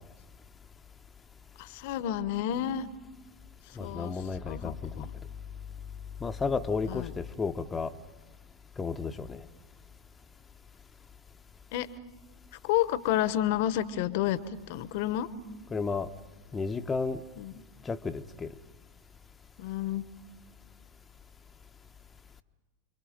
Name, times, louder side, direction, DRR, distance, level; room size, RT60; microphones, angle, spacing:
voice 1, 1.6-2.8 3.8-4.2 4.5-5.1 6.9-7.1 11.7-11.9 12.6-14.4 14.7-15.3 17.4-17.5 19.6-20.0, left 12 dB, 55° left, 15 dB, 1.2 m, -30 dB
voice 2, 3.8-5.1 6.2-7.9 8.8-9.4 15.7-16.1 16.5-17.2 17.8-18.5, left 4 dB, 15° left, 7 dB, 1.0 m, -32 dB
30.0 x 23.5 x 5.2 m, 1.2 s
figure-of-eight pair, 90°, 0 cm